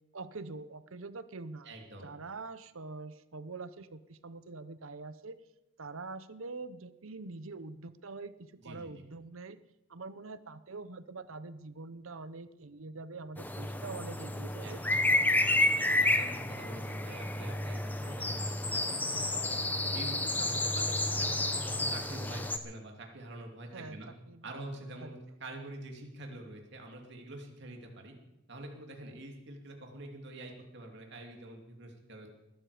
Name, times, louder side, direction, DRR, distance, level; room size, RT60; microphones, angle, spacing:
voice 1, 0.1-1.7 2.0-5.4 5.8-8.3 8.6-9.6 9.9-14.8 17.6-17.7 23.7-24.0 24.3-24.5 25.0-25.1, right 3 dB, 75° right, 14 dB, 0.8 m, -44 dB
voice 2, 1.6-2.1 8.6-9.0 14.6-15.0 16.0-19.6 19.9-24.1 24.4-28.1 28.5-32.3, right 1 dB, 55° right, 2 dB, 2.7 m, -46 dB
sound 1, 13.4-22.6, left 2 dB, 10° left, 0.8 m, -30 dB
20.5 x 13.0 x 5.0 m, 0.95 s
head